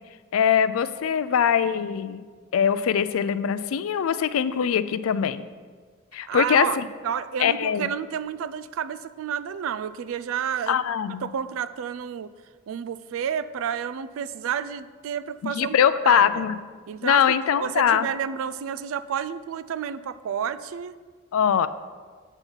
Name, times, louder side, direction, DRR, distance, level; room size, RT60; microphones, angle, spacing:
voice 1, 0.3-2.2 2.5-5.5 6.1-6.8 7.4-7.9 10.7-11.3 15.4-16.6 17.0-18.1 21.3-21.7, left 8 dB, 85° left, 14 dB, 0.4 m, -22 dB
voice 2, 6.3-6.8 7.0-10.8 11.2-12.3 12.7-15.8 16.0-16.5 16.9-20.9, right 8 dB, 80° right, 14 dB, 0.3 m, -30 dB
7.9 x 5.6 x 4.5 m, 1.5 s
head